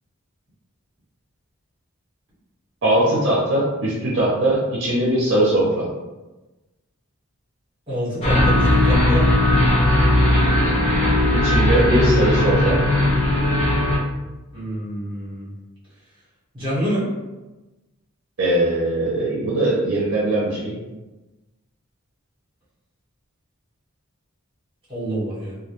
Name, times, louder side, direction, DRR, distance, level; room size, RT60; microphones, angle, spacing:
voice 1, 2.8-5.9 11.3-12.8 18.4-20.7, right 1 dB, 60° right, -5 dB, 0.5 m, -20 dB
voice 2, 7.9-9.3 14.5-15.5 16.5-17.1 24.9-25.6, equal, 25° right, -8 dB, 1.0 m, -27 dB
sound 1, 8.2-14.0, left 1 dB, 30° left, 0.5 m, -17 dB
2.2 x 2.1 x 2.8 m, 1.1 s
head